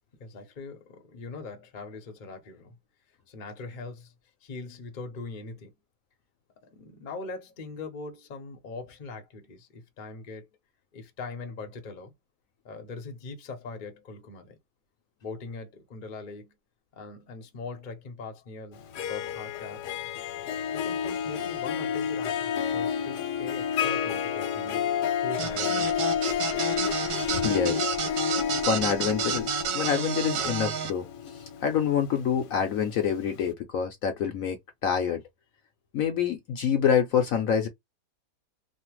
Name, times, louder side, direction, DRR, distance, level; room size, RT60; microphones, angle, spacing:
voice 1, 0.2-2.8 3.3-4.1 4.4-5.7 6.6-10.5 10.9-12.1 12.6-14.6 15.2-16.6 16.9-19.9 20.5-26.1 26.5-26.9, left 3 dB, 40° left, 0.7 m, -41 dB
Harp, 18.8-32.7, left 8 dB, 80° left, 1.2 m, -30 dB
sound 1, 25.4-30.9, right 8 dB, 65° right, 1.0 m, -31 dB
voice 2, 27.3-28.2 28.6-35.2 35.9-37.7, left 8 dB, 65° left, 0.9 m, -27 dB
3.2 x 2.1 x 2.9 m
omnidirectional pair, 1.8 m